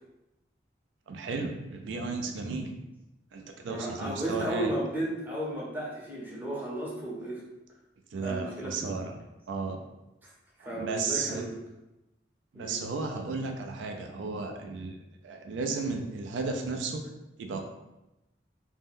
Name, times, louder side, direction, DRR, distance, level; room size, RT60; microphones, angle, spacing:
voice 1, 1.1-2.7 3.3-4.7 8.1-9.2 9.5-9.8 10.6-11.5 12.5-15.0 15.2-17.0 17.4-17.6, right 4 dB, 85° right, 4 dB, 0.4 m, -34 dB
voice 2, 3.7-7.4 8.2-8.9 10.6-11.5 12.5-12.8, right 1 dB, 10° right, -5 dB, 0.6 m, -34 dB
2.6 x 2.1 x 3.5 m, 0.95 s
head